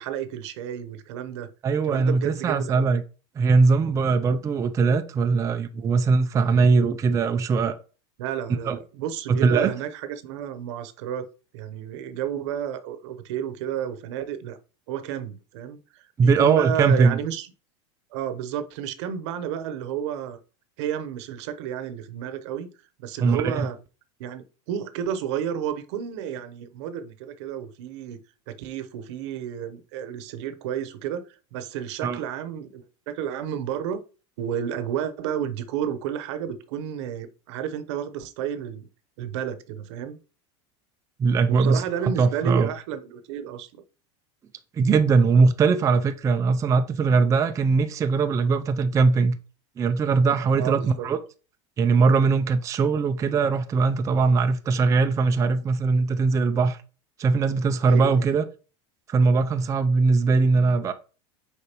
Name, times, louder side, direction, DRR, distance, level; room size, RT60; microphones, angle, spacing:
voice 1, 0.0-1.5 1.8-2.9 8.2-11.3 11.5-14.6 14.9-17.5 18.1-20.4 20.8-22.7 23.0-23.8 24.2-28.2 28.5-31.2 31.5-34.0 34.4-38.9 39.2-40.2 41.5-43.8 50.6-51.1 57.9-58.3, right 9 dB, 70° right, 0.9 m, -31 dB
voice 2, 1.6-3.0 3.4-7.8 8.7-8.8 9.3-9.7 16.2-17.2 23.2-23.7 32.0-32.2 41.2-41.8 42.2-42.7 44.7-49.4 49.8-51.2 51.8-56.8 57.2-58.4 59.1-60.9, right 4 dB, 20° right, 0.5 m, -21 dB
6.6 x 4.9 x 3.0 m
supercardioid pair, 135°, 15 cm